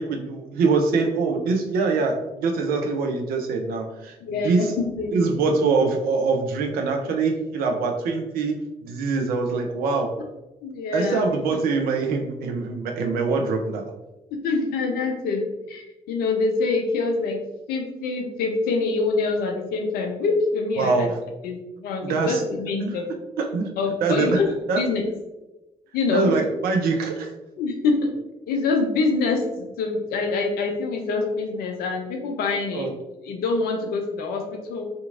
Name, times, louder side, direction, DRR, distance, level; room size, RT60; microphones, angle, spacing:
voice 1, 0.0-4.2 4.4-4.7 5.1-8.6 8.8-10.1 10.9-13.8 20.8-21.2 22.0-22.4 22.8-22.9 23.4-23.7 24.0-24.4 24.7-24.8 26.1-27.3 32.7-32.9, right 4 dB, 55° right, 3 dB, 0.5 m, -23 dB
voice 2, 4.2-5.3 10.6-11.2 11.5-11.6 14.4-15.4 15.7-17.4 17.7-21.1 21.4-23.1 23.8-25.0 25.9-26.3 27.6-28.1 28.5-32.9 33.3-34.8, left 3 dB, 55° left, 3 dB, 0.5 m, -25 dB
2.8 x 2.6 x 2.4 m, 1.0 s
figure-of-eight pair, 40°, 18 cm